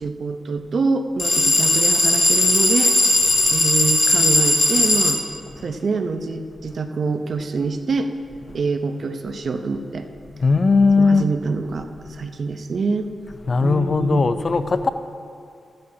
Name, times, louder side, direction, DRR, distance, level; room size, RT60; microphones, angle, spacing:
voice 1, 0.0-3.0 3.5-5.2 5.6-8.1 8.5-10.1 11.0-13.1 13.6-14.2, right 4 dB, 65° right, 7 dB, 0.8 m, -25 dB
sound 1, 1.2-5.2, left 2 dB, 35° left, 1.7 m, -17 dB
voice 2, 10.3-11.3 13.4-14.9, left 4 dB, 50° left, 10 dB, 0.6 m, -19 dB
14.5 x 13.0 x 2.9 m, 2.4 s
cardioid pair, 50°, 0 cm